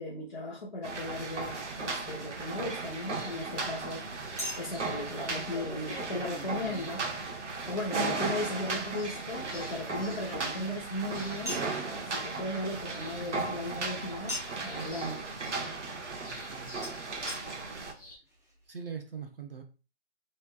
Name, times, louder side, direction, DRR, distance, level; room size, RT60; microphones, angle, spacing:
voice 1, 0.0-7.1 7.7-11.6 12.0-15.3, left 1 dB, 40° left, -3 dB, 1.0 m, -37 dB
sound 1, 0.8-17.9, right 3 dB, 85° right, 1.1 m, -36 dB
Chink clink, 1.6-1.7 4.4-7.6 9.1-10.8 11.5-11.7 14.3-14.7 16.8-16.9 17.3-17.4 18.0-18.1 18.3-18.4, left 1 dB, 15° right, 0.9 m, -42 dB
sound 2, 3.0-18.2, left 1 dB, 20° left, 0.8 m, -52 dB
voice 2, 16.2-17.3 18.7-19.6, right 6 dB, 55° right, 4 dB, 0.8 m, -43 dB
5.7 x 3.3 x 2.2 m, 0.33 s
hypercardioid pair, 180°, 35 cm